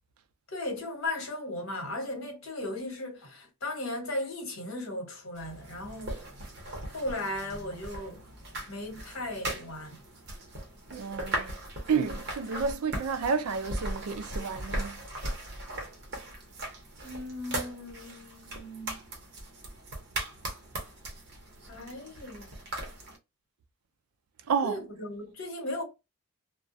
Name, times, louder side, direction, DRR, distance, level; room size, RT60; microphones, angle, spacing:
voice 1, 0.5-6.2 6.9-8.3 8.7-10.0 17.0-19.0 21.7-22.5 24.6-25.8, left 1 dB, 70° left, 1.1 m, -36 dB
sound 1, 5.3-23.2, right 1 dB, 45° right, 0.8 m, -39 dB
voice 2, 10.9-11.5 11.9-15.0 24.5-24.8, right 5 dB, 80° right, 0.4 m, -30 dB
2.3 x 2.2 x 2.5 m
head